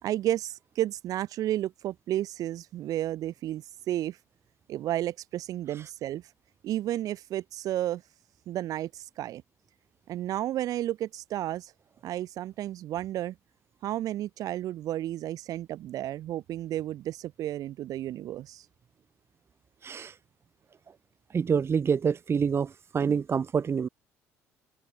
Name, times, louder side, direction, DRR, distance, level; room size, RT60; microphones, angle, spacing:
voice 1, 0.0-4.2 4.7-6.2 6.6-8.0 8.5-9.4 10.1-11.7 12.0-13.3 13.8-18.6, right 13 dB, 65° right, 3.2 m, -32 dB
voice 2, 19.8-20.1 21.3-23.9, right 6 dB, 40° right, 3.0 m, -27 dB
supercardioid pair, 70°, 7 cm